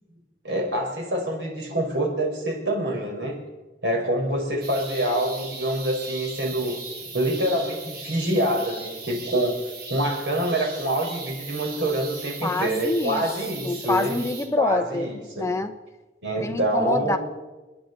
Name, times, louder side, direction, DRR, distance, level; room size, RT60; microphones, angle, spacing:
voice 1, 0.4-3.4 3.8-6.8 7.1-9.6 9.9-14.2 14.6-15.5 16.2-17.2, right 1 dB, 85° right, 0 dB, 4.6 m, -26 dB
sound 1, 4.6-14.5, right 4 dB, 60° right, 2.9 m, -38 dB
voice 2, 12.4-13.2 13.6-15.1 15.3-15.7 16.4-17.2, left 2 dB, 15° left, 7 dB, 0.9 m, -26 dB
30.0 x 10.5 x 4.0 m, 1.1 s
head